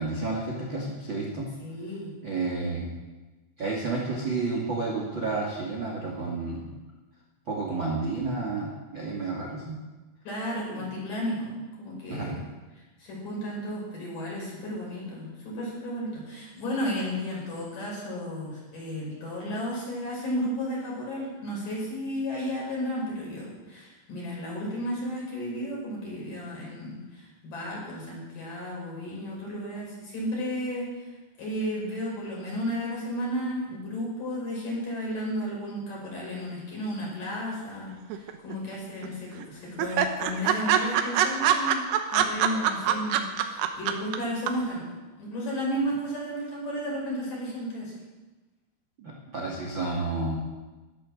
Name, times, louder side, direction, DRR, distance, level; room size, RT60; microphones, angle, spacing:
voice 1, 0.0-1.5 2.2-2.9 3.6-6.7 7.5-9.8 10.7-10.8 12.1-12.4 49.0-50.4, right 3 dB, 40° right, -3 dB, 2.0 m, -31 dB
voice 2, 1.6-2.1 10.2-12.4 13.0-30.8 31.4-37.9 38.4-41.8 42.1-44.8 45.2-47.9, equal, 45° left, -4 dB, 7.0 m, -33 dB
sound 1, 38.1-38.8 39.0-39.1 39.4-39.5 39.8-44.2 44.5-44.6, right 10 dB, 75° right, 2.8 m, -24 dB
14.0 x 12.0 x 6.6 m, 1.2 s
omnidirectional pair, 5.4 m